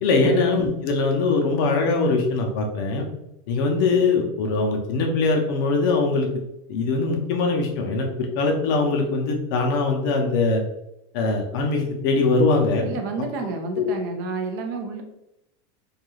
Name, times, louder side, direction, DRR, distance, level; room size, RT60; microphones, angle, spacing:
voice 1, 0.0-3.0 3.5-6.3 6.7-10.6 11.1-12.9 13.7-13.9, left 3 dB, 45° left, 2 dB, 0.5 m, -22 dB
voice 2, 12.8-15.0, right 3 dB, 45° right, 4 dB, 0.5 m, -30 dB
2.3 x 2.2 x 3.0 m, 0.85 s
supercardioid pair, 170°, 15 cm